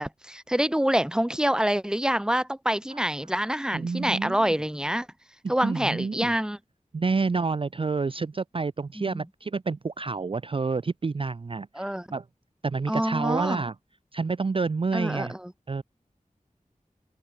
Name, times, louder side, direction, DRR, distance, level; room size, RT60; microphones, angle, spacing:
voice 1, 0.0-5.1 5.5-6.6 9.0-9.2 11.7-12.1 12.9-13.6 14.9-15.5, equal, 5° right, 0.8 m, -26 dB
voice 2, 3.7-4.4 5.6-6.3 6.9-11.9 12.1-12.2 12.6-13.7 14.1-15.4 15.7-15.8, right 4 dB, 40° right, 0.4 m, -28 dB
open air
wide cardioid pair, 50°, 14 cm